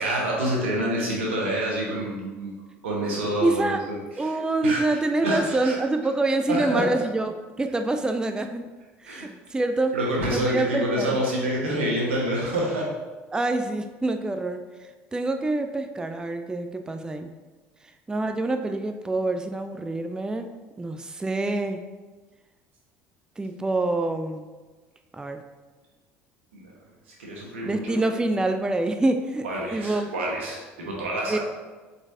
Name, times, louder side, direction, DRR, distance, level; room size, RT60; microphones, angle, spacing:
voice 1, 0.0-2.6 2.8-4.4 4.6-5.8 6.5-6.9 9.1-9.3 9.9-12.9 26.5-26.7 27.2-28.1 29.4-31.4, right 1 dB, 90° right, -3 dB, 1.1 m, -27 dB
voice 2, 3.4-3.8 4.2-8.7 9.0-10.0 10.3-11.2 13.3-17.3 18.1-21.8 23.4-24.5 25.1-25.4 27.6-29.5 29.7-30.1 31.3-31.4, right 2 dB, 10° right, 6 dB, 0.3 m, -26 dB
4.5 x 4.0 x 2.7 m, 1.3 s
hypercardioid pair, 75°, 6 cm